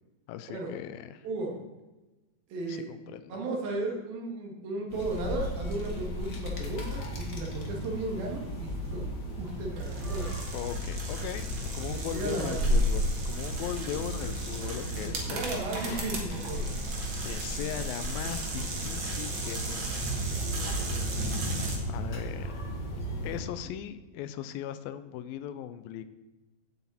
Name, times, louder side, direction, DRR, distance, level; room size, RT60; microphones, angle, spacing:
voice 1, 0.3-1.3 2.7-3.4 10.5-15.6 16.6-16.7 17.2-20.3 21.4-22.7 23.2-26.0, left 11 dB, 85° left, 11 dB, 2.5 m, -39 dB
voice 2, 1.2-1.6 2.5-2.9 3.3-9.0 9.4-10.4 11.9-12.6 15.0-16.7, right 2 dB, 90° right, 0 dB, 4.0 m, -35 dB
sound 1, 4.9-23.4, equal, 40° left, 1.7 m, -34 dB
sound 2, 9.8-21.8, right 3 dB, 40° right, 2.3 m, -38 dB
16.0 x 8.3 x 4.2 m, 1.1 s
omnidirectional pair, 4.1 m